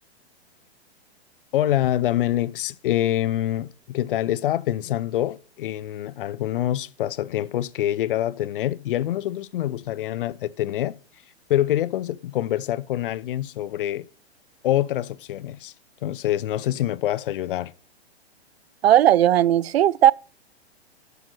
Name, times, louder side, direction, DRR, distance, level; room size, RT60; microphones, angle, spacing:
voice 1, 1.5-11.0 11.5-14.1 14.6-15.7 16.0-17.7, left 13 dB, 55° left, 0.6 m, -25 dB
voice 2, 18.8-20.1, right 11 dB, 70° right, 0.5 m, -16 dB
10.5 x 6.9 x 4.7 m
figure-of-eight pair, 110°, 33 cm